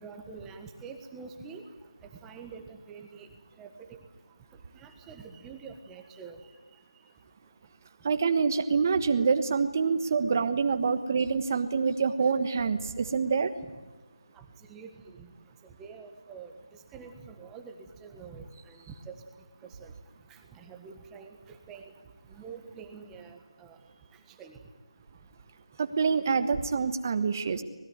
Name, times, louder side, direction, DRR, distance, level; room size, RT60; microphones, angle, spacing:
voice 1, 0.0-1.6 2.2-3.3 3.6-4.0 4.7-6.4 14.3-14.9 15.2-15.3 15.8-16.5 16.9-19.1 19.8-19.9 20.3-21.9 22.3-23.8 24.4-24.6, right 5 dB, 10° right, 5 dB, 1.4 m, -46 dB
voice 2, 8.0-13.5 25.8-27.6, right 5 dB, 30° right, 9 dB, 1.4 m, -26 dB
25.5 x 20.5 x 9.4 m, 1.3 s
figure-of-eight pair, 165°, 3 cm